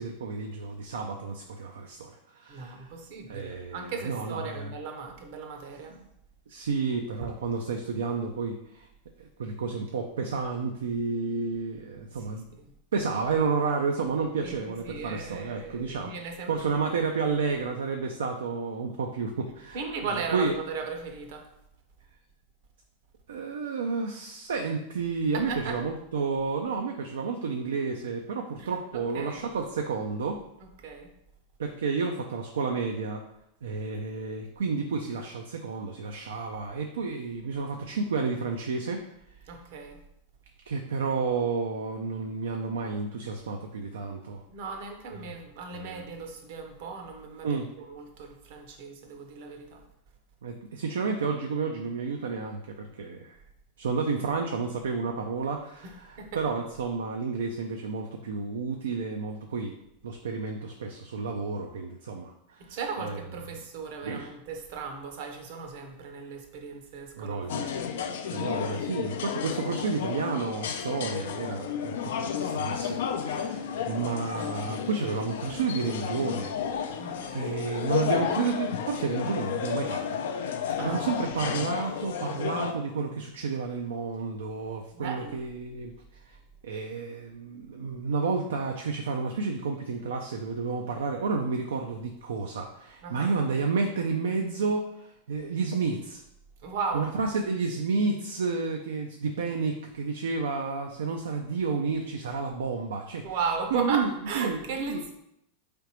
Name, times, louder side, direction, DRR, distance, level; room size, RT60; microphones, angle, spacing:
voice 1, 0.0-2.9 3.3-4.7 6.5-8.9 9.2-12.4 12.9-16.1 16.5-19.8 20.3-20.5 23.3-30.4 31.6-33.2 33.6-39.0 40.7-44.4 45.7-46.0 47.4-47.7 50.4-53.4 53.8-59.7 60.0-63.2 64.0-64.3 67.1-67.7 68.3-80.0 80.8-85.9 86.3-86.4 86.6-96.2 96.9-103.4 103.7-105.1, right 4 dB, 85° right, 3 dB, 0.4 m, -31 dB
voice 2, 2.5-6.0 7.2-7.3 12.3-12.7 14.4-17.1 19.7-21.5 25.3-25.8 28.6-28.7 29.1-29.4 30.8-31.1 39.5-40.0 44.5-49.8 56.2-56.4 62.6-67.8 77.0-77.3 80.8-81.1 84.9-85.4 93.0-93.3 96.6-97.1 103.2-105.1, right 5 dB, 65° right, 4 dB, 0.8 m, -36 dB
sound 1, 67.5-82.7, left 8 dB, 75° left, 0.4 m, -32 dB
3.8 x 3.4 x 2.9 m, 0.78 s
hypercardioid pair, 105°, 0 cm